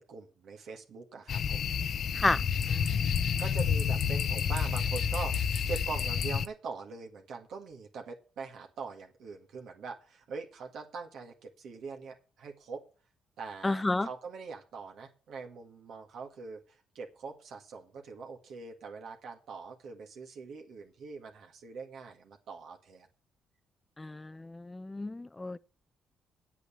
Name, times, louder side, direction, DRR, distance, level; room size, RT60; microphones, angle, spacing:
voice 1, 0.0-1.8 2.6-2.9 3.4-12.8 13.4-23.1, right 5 dB, 70° right, 1.9 m, -43 dB
sound 1, 1.3-6.5, left 7 dB, 60° left, 0.7 m, -29 dB
voice 2, 2.7-3.0 13.6-14.1 24.0-25.6, left 2 dB, 15° left, 0.6 m, -31 dB
8.9 x 8.2 x 7.1 m
cardioid pair, 90°, 0 cm